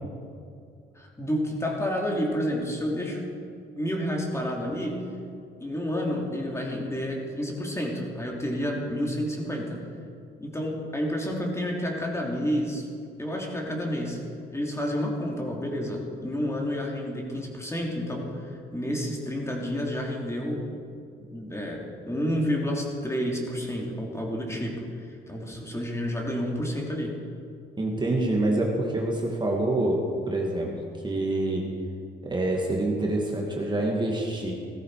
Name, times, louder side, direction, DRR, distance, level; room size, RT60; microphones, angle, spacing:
voice 1, 0.9-3.3 3.8-5.0 5.6-9.9 10.4-12.9 13.2-14.2 14.5-20.7 21.2-27.2, equal, 15° left, -1 dB, 3.1 m, -30 dB
voice 2, 27.8-30.0 30.3-31.6 32.2-34.5, right 2 dB, 20° right, -1 dB, 2.3 m, -26 dB
16.5 x 13.5 x 5.0 m, 2.4 s
cardioid pair, 90°, 20 cm